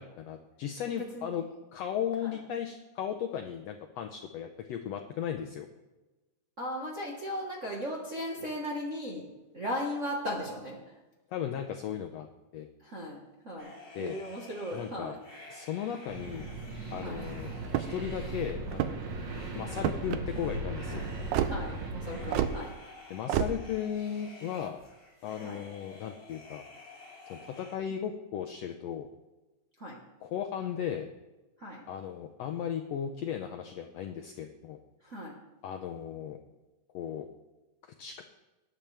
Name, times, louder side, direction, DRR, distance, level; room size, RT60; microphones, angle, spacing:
voice 1, 0.0-1.4 1.7-5.7 11.3-12.3 12.5-12.7 13.9-14.2 14.7-15.2 15.5-16.4 16.9-17.5 17.8-19.0 19.5-21.0 23.1-24.8 25.2-26.6 27.3-29.1 30.2-31.1 31.9-34.8 35.6-36.4 36.9-37.3 38.0-38.2, left 9 dB, 80° left, 5 dB, 1.5 m, -36 dB
voice 2, 0.9-1.4 2.2-2.3 6.6-9.2 9.5-10.8 12.8-13.7 14.0-15.2 17.0-17.2 21.2-22.7 25.4-25.6 27.9-28.0 29.8-30.0 31.6-31.8 35.0-35.3, equal, 40° right, -4 dB, 1.1 m, -37 dB
sound 1, 13.6-27.8, left 2 dB, 50° left, 3.9 m, -52 dB
sound 2, 16.1-22.4, right 2 dB, 60° right, 2.5 m, -38 dB
sound 3, 17.6-18.1 18.7-19.2 19.8-20.2 21.3-21.5 22.3-22.6 23.3-23.5, right 10 dB, 80° right, 2.1 m, -28 dB
19.0 x 9.0 x 3.4 m, 1.1 s
omnidirectional pair, 3.7 m